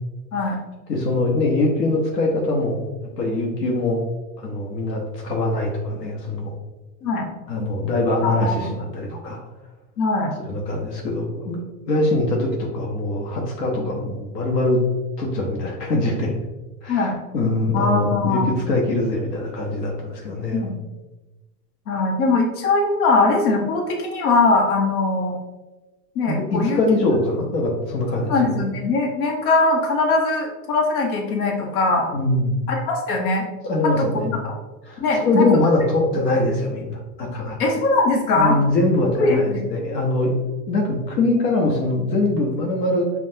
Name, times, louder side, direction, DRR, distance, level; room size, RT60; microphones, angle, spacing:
voice 1, 0.9-2.8 3.2-4.0 4.4-6.5 7.5-9.4 10.5-14.8 15.2-16.3 16.8-20.7 26.3-28.6 32.1-32.6 33.6-34.3 34.9-37.6 38.3-40.3 40.7-43.1, left 2 dB, 85° left, -1 dB, 1.0 m, -22 dB
voice 2, 8.2-8.7 9.0-9.1 10.0-10.3 13.8-13.9 16.9-17.2 17.7-18.6 20.5-20.7 21.9-25.4 26.1-26.8 28.3-32.1 32.7-33.5 33.8-34.5 35.0-35.5 37.6-38.6 39.2-39.6, left 3 dB, 60° left, 0 dB, 1.1 m, -21 dB
5.4 x 2.4 x 2.7 m, 1.1 s
hypercardioid pair, 115°, 48 cm